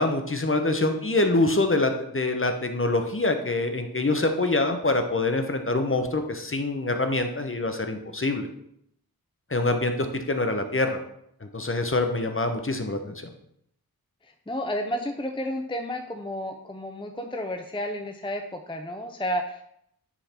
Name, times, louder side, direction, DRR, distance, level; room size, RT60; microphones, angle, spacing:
voice 1, 0.0-8.5 9.5-11.0 11.4-13.3, left 2 dB, 35° left, 6 dB, 0.9 m, -25 dB
voice 2, 14.5-19.6, equal, 15° left, 5 dB, 0.6 m, -31 dB
9.8 x 3.9 x 4.3 m, 0.72 s
wide cardioid pair, 60°, 37 cm